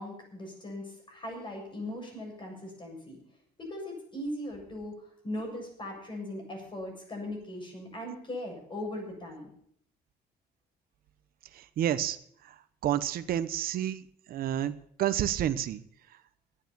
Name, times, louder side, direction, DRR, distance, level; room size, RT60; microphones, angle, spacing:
voice 1, 0.0-3.2 3.6-9.5, left 1 dB, 30° left, 1 dB, 7.4 m, -39 dB
voice 2, 11.5-12.2 12.8-14.0 14.3-14.7 15.0-15.8, right 11 dB, 60° right, 11 dB, 0.9 m, -29 dB
12.0 x 9.3 x 9.2 m, 0.66 s
cardioid pair, 110°, 17 cm